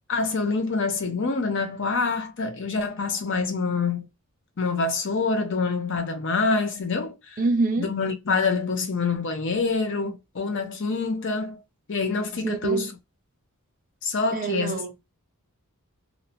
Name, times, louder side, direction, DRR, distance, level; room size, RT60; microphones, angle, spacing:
voice 1, 0.1-4.1 4.6-7.4 7.8-11.6 11.9-12.9 14.0-14.8, left 4 dB, 55° left, 0.6 m, -26 dB
voice 2, 7.4-7.9 12.4-12.9 14.3-14.9, right 3 dB, 35° right, 0.5 m, -25 dB
2.6 x 2.1 x 2.7 m
head